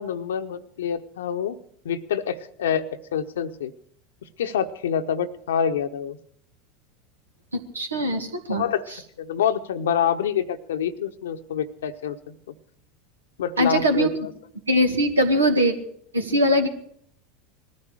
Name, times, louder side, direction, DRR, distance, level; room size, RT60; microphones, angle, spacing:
voice 1, 0.0-1.6 1.8-2.8 3.1-3.7 4.4-6.2 8.5-12.5 13.4-14.3, left 8 dB, 70° left, 9 dB, 1.0 m, -26 dB
voice 2, 7.5-8.6 13.6-14.1 14.7-15.7 16.1-16.7, equal, 85° right, 5 dB, 1.9 m, -21 dB
20.0 x 14.0 x 4.9 m, 0.66 s
figure-of-eight pair, 80°, 0 cm